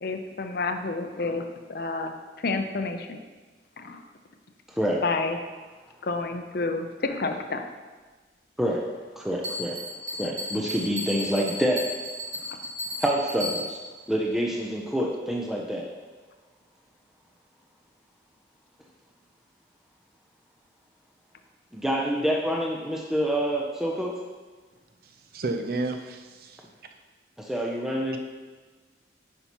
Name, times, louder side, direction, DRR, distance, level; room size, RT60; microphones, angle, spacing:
voice 1, 0.0-2.1 2.4-3.2 3.8-4.0 5.0-5.4 6.0-7.6, left 3 dB, 55° left, 6 dB, 0.6 m, -29 dB
voice 2, 9.2-9.8 10.1-11.9 13.0-13.8 14.1-15.9 21.7-24.1 27.4-28.2, equal, ahead, -2 dB, 0.5 m, -27 dB
Bell, 9.4-14.0, left 1 dB, 30° right, 1.7 m, -35 dB
voice 3, 25.0-26.6, right 2 dB, 55° right, 5 dB, 0.6 m, -32 dB
10.0 x 5.5 x 3.0 m, 1.4 s
head